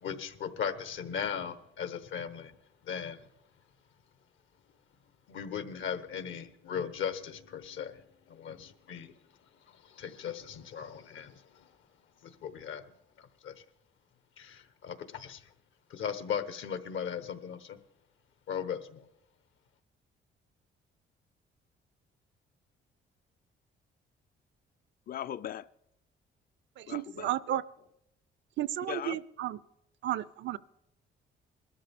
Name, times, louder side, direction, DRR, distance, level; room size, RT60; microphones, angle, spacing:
voice 1, 0.0-2.5 2.9-3.2 5.3-8.0 8.3-9.1 10.0-11.3 12.4-12.8 13.4-13.5 14.4-14.6 15.3-15.4 15.9-17.8 18.5-19.0, left 7 dB, 75° left, 1.1 m, -37 dB
voice 2, 25.1-25.7 26.9-27.3 28.9-29.2, left 10 dB, 50° left, 0.4 m, -38 dB
voice 3, 26.8-27.6 28.6-29.6 30.0-30.6, right 13 dB, 70° right, 0.5 m, -33 dB
21.0 x 12.5 x 3.6 m
cardioid pair, 90°, 20 cm